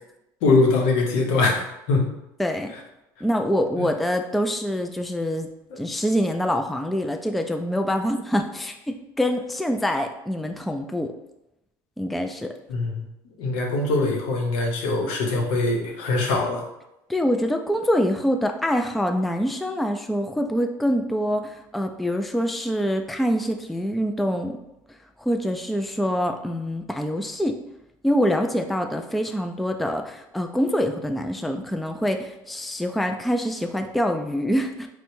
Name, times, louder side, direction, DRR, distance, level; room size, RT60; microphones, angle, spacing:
voice 1, 0.4-2.1 3.8-3.9 12.7-13.1 13.4-16.6, left 3 dB, 75° left, 0 dB, 0.8 m, -22 dB
voice 2, 2.4-2.7 3.2-5.5 5.8-11.1 12.0-12.5 17.1-24.6 25.2-27.6 28.0-34.9, equal, ahead, 5 dB, 0.3 m, -25 dB
4.3 x 2.1 x 2.6 m, 0.89 s
hypercardioid pair, 75°, 11 cm